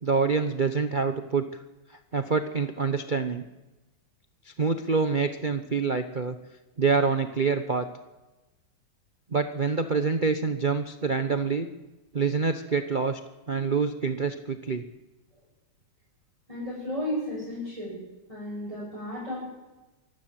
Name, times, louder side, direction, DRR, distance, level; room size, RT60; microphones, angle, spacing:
voice 1, 0.0-1.6 1.9-3.4 4.4-6.4 6.8-7.9 9.3-11.7 12.1-13.2 13.5-14.9, right 5 dB, 40° right, 8 dB, 0.7 m, -26 dB
voice 2, 16.5-18.0 18.3-19.4, left 1 dB, 15° right, -6 dB, 7.4 m, -33 dB
24.5 x 14.5 x 7.6 m, 1.1 s
omnidirectional pair, 2.3 m